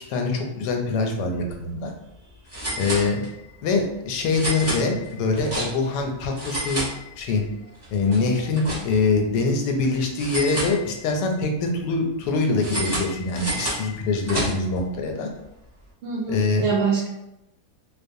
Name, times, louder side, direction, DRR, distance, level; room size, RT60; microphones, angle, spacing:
voice 1, 0.1-1.9 2.8-3.2 3.6-6.9 7.2-7.4 7.9-15.3 16.3-16.7, left 3 dB, 85° left, 2 dB, 1.2 m, -24 dB
sound 1, 1.3-1.5 1.8-1.9 2.5-3.5 4.3-6.0 6.3-7.5 7.8-9.2 10.2-11.3 12.6-14.8, right 1 dB, 15° right, 0.7 m, -30 dB
voice 2, 16.0-17.1, right 5 dB, 80° right, -5 dB, 0.5 m, -24 dB
2.9 x 2.0 x 2.6 m, 0.89 s
omnidirectional pair, 1.7 m